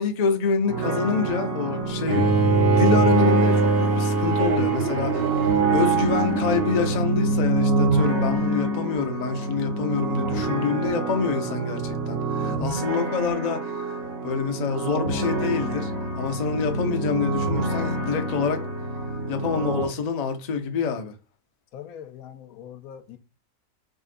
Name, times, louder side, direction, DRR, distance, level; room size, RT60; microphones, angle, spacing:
voice 1, 0.0-2.2 2.7-5.4 5.7-13.7 14.2-15.9 16.2-18.6 19.3-21.1, left 5 dB, 50° left, 0.5 m, -26 dB
sound 1, 0.7-19.8, right 2 dB, 70° right, 1.4 m, -27 dB
Bowed string instrument, 2.1-7.1, right 4 dB, 50° right, 1.0 m, -21 dB
voice 2, 21.7-23.2, left 9 dB, 90° left, 1.1 m, -42 dB
4.4 x 3.7 x 2.5 m
omnidirectional pair, 1.5 m